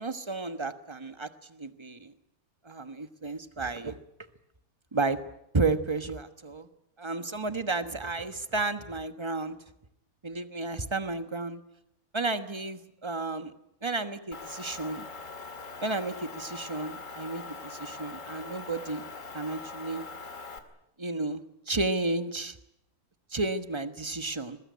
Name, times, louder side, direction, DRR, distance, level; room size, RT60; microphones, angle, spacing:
voice 1, 0.0-2.1 2.6-4.0 4.9-5.2 5.5-6.7 7.0-9.6 10.2-11.6 12.1-13.5 13.8-15.1 15.8-19.1 19.3-20.1 21.0-22.6 23.3-24.6, right 3 dB, 20° right, 10 dB, 1.2 m, -32 dB
Motor vehicle (road) / Engine, 14.3-20.6, left 4 dB, 60° left, 2.6 m, -42 dB
22.5 x 20.0 x 9.6 m, 0.82 s
omnidirectional pair, 1.5 m